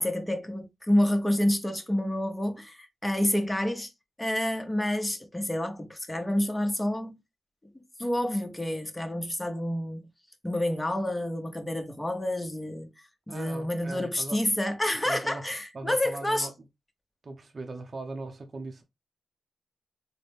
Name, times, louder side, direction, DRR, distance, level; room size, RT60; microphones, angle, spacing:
voice 1, 0.0-3.9 4.2-7.2 8.0-10.0 10.4-12.9 13.3-16.5, left 1 dB, 15° left, 1.0 m, -28 dB
voice 2, 13.3-14.4 15.0-15.4 15.7-16.5 17.2-18.8, right 2 dB, 50° right, 0.7 m, -39 dB
3.9 x 2.1 x 3.3 m
supercardioid pair, 45°, 0 cm